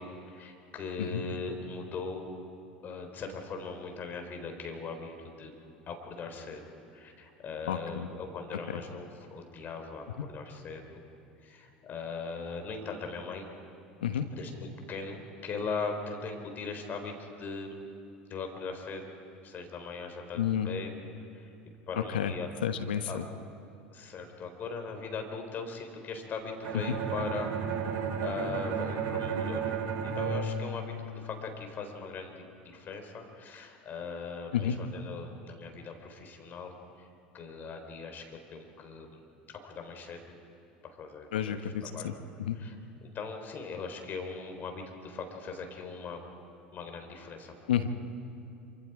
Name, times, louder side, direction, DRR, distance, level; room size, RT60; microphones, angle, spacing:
voice 1, 0.0-2.3 2.8-5.5 5.9-6.6 6.9-11.0 11.4-13.5 14.3-17.9 18.3-19.1 19.4-20.9 21.3-21.5 21.9-22.5 23.1-23.2 23.9-27.5 27.9-29.7 30.0-36.7 37.0-37.1 37.3-38.2 38.5-39.2 39.6-40.2 40.8-41.6 41.9-42.1 42.6-42.7 43.0-46.2 46.7-47.5, left 4 dB, 40° left, 4 dB, 4.0 m, -40 dB
voice 2, 7.7-8.1 14.0-14.3 20.4-20.7 22.0-22.3 22.6-23.2 34.5-34.8 41.3-42.1 42.4-42.6 47.7-47.9, left 9 dB, 75° left, 9 dB, 1.2 m, -30 dB
Bowed string instrument, 26.6-31.6, right 5 dB, 55° right, 3.1 m, -33 dB
27.0 x 25.0 x 4.9 m, 2.7 s
hypercardioid pair, 75°, 5 cm